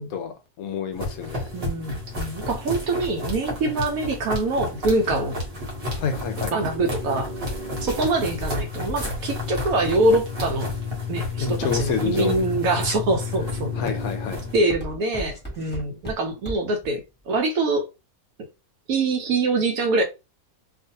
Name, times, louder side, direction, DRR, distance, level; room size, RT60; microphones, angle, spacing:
voice 1, 0.0-1.5 3.7-3.8 6.0-6.5 11.4-12.5 13.8-14.4, left 6 dB, 70° left, 1.0 m, -28 dB
sound 1, 0.9-14.6, left 3 dB, 45° right, 1.1 m, -31 dB
voice 2, 1.4-5.4 6.5-7.3 7.8-10.7 11.1-13.7 14.5-17.9 18.9-20.0, right 2 dB, 70° right, 1.0 m, -24 dB
Walk footsteps, 7.7-11.7 12.3-12.8 13.3-13.6 14.0-16.9 17.2-17.3, equal, 5° left, 1.1 m, -37 dB
2.5 x 2.4 x 2.7 m
omnidirectional pair, 1.6 m